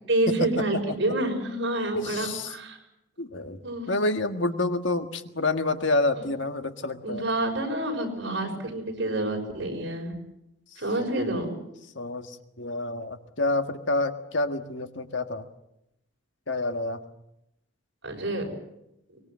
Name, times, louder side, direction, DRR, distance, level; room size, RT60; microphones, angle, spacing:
voice 1, 0.1-2.8 3.6-3.9 7.0-10.1 10.8-11.6 18.0-18.6, right 1 dB, 60° right, 2 dB, 6.2 m, -28 dB
voice 2, 1.9-2.5 3.2-3.6 3.9-7.2 8.3-8.6 11.9-15.4 16.5-17.0, left 2 dB, 70° left, 7 dB, 1.7 m, -28 dB
24.0 x 21.0 x 7.5 m, 0.85 s
head